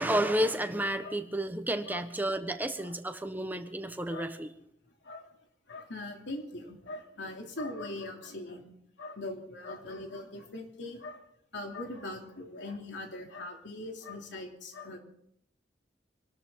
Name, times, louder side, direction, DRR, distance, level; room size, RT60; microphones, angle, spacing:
voice 1, 0.0-4.5, right 1 dB, 10° right, 7 dB, 1.2 m, -31 dB
voice 2, 5.7-11.2 11.5-15.0, left 2 dB, 75° left, 2 dB, 3.0 m, -41 dB
26.5 x 12.5 x 3.8 m, 0.72 s
head